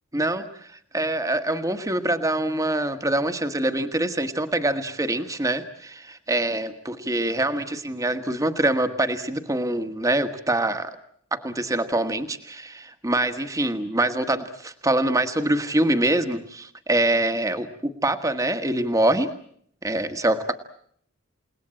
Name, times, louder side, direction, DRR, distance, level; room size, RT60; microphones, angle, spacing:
voice 1, 0.1-11.0 11.3-19.3 19.8-20.5, right 1 dB, 15° right, 8 dB, 1.3 m, -25 dB
29.0 x 18.5 x 8.9 m, 0.66 s
head